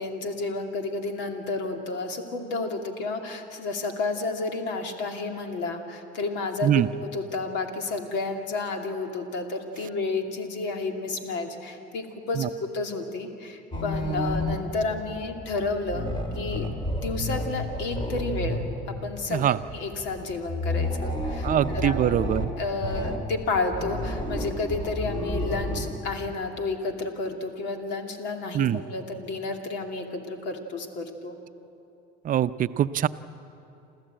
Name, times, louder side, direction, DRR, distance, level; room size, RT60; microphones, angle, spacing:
voice 1, 0.0-16.1 16.3-16.7 17.0-19.4 19.7-22.0 22.6-31.4, left 3 dB, 70° left, 4 dB, 2.6 m, -31 dB
sound 1, 13.7-26.3, left 1 dB, 25° left, 3.3 m, -31 dB
voice 2, 21.4-22.5 28.5-28.8 32.2-33.1, right 11 dB, 45° right, 14 dB, 0.6 m, -23 dB
28.0 x 14.0 x 9.0 m, 2.8 s
supercardioid pair, 100°, 19 cm